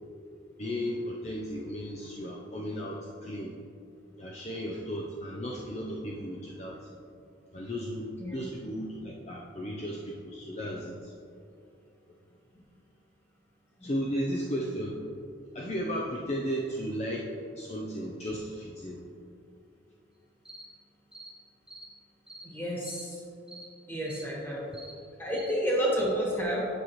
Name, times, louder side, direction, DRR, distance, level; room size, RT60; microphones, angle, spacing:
voice 1, 0.6-3.6 4.2-6.9 7.5-11.1 13.8-15.0 15.5-19.0, equal, 35° left, -2 dB, 0.5 m, -35 dB
sound 1, 20.4-20.7 21.1-21.3 21.7-21.9 22.3-22.5 22.8-23.1 23.5-23.7 24.1-24.3 24.7-25.0 25.3-25.5, right 2 dB, 5° right, 0.7 m, -47 dB
voice 2, 22.4-23.2 23.9-24.7 25.2-26.6, equal, 10° left, -5 dB, 1.5 m, -30 dB
9.6 x 5.7 x 3.1 m, 2.5 s
head